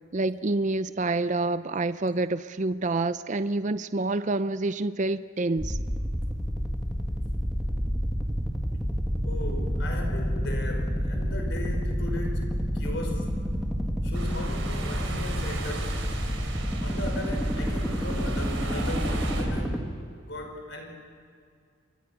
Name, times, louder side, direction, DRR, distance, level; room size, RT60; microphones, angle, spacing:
voice 1, 0.1-5.8, right 2 dB, 35° right, 13 dB, 0.5 m, -27 dB
sound 1, 5.6-19.8, equal, ahead, 1.9 m, -29 dB
voice 2, 9.2-13.4 14.0-16.2 16.8-19.8 20.3-21.0, left 1 dB, 60° left, 3 dB, 5.4 m, -37 dB
sound 2, 14.1-19.4, right 2 dB, 70° right, 4.4 m, -37 dB
27.5 x 23.5 x 5.8 m, 2.2 s
head